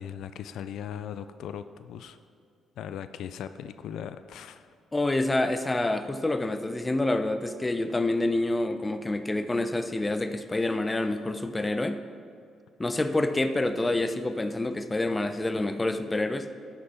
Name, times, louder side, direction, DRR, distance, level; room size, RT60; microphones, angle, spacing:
voice 1, 0.0-2.2 2.8-4.7, left 9 dB, 75° left, 11 dB, 0.3 m, -38 dB
voice 2, 4.9-12.0 12.8-16.5, left 2 dB, 20° left, 9 dB, 0.6 m, -27 dB
11.0 x 6.7 x 4.3 m, 2.3 s
cardioid pair, 90°, 0 cm